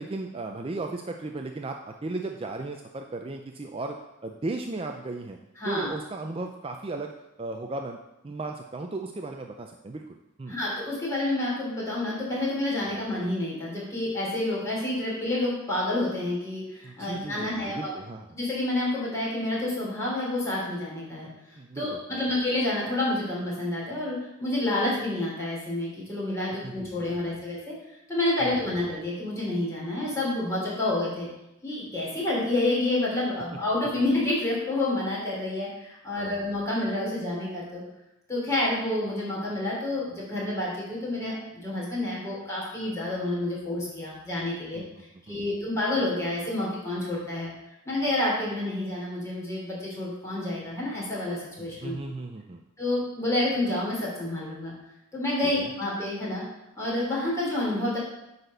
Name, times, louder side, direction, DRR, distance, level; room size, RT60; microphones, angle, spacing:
voice 1, 0.0-4.0 4.2-5.4 5.7-7.1 7.4-8.0 8.2-10.6 12.9-13.0 16.8-18.3 21.6-22.2 26.6-26.7 27.2-27.4 28.4-28.7 36.2-36.5 44.7-44.9 45.3-45.5 51.6-52.6 55.4-55.7, right 2 dB, 25° right, 3 dB, 0.5 m, -36 dB
voice 2, 5.6-5.9 10.5-17.9 18.3-21.3 21.7-27.7 28.1-31.3 31.6-37.8 38.3-44.8 45.3-47.5 47.8-52.0 52.8-54.7 55.1-56.4 56.7-58.0, left 1 dB, 15° left, -6 dB, 3.2 m, -29 dB
9.1 x 4.2 x 6.6 m, 0.91 s
head